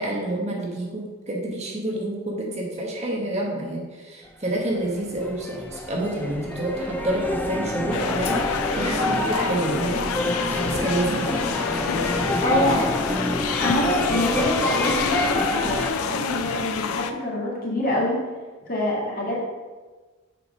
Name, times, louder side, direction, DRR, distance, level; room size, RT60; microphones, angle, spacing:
voice 1, 0.0-10.0 10.6-11.5, right 1 dB, 30° right, -2 dB, 1.2 m, -28 dB
sound 1, 4.5-15.9, left 1 dB, 10° left, 0.5 m, -27 dB
sound 2, 7.9-17.1, left 6 dB, 75° left, 0.5 m, -28 dB
voice 2, 12.4-12.9 13.6-18.2 18.7-19.4, left 1 dB, 45° left, -4 dB, 2.0 m, -25 dB
6.8 x 4.6 x 5.2 m, 1.3 s
head